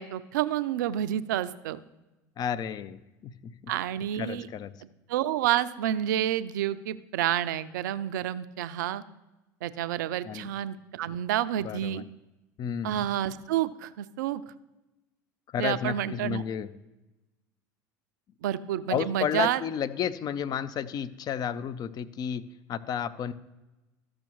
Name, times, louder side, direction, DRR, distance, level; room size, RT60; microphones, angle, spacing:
voice 1, 0.0-1.8 3.7-4.5 5.1-9.0 9.6-12.0 12.8-14.4 15.6-16.4 18.4-19.6, right 11 dB, 75° right, 14 dB, 0.4 m, -29 dB
voice 2, 2.4-3.7 4.2-4.7 10.2-10.5 11.6-12.0 12.6-13.1 15.5-16.7 18.9-23.3, left 8 dB, 40° left, 14 dB, 0.6 m, -32 dB
13.5 x 6.2 x 3.1 m, 1.0 s
hypercardioid pair, 80°, 10 cm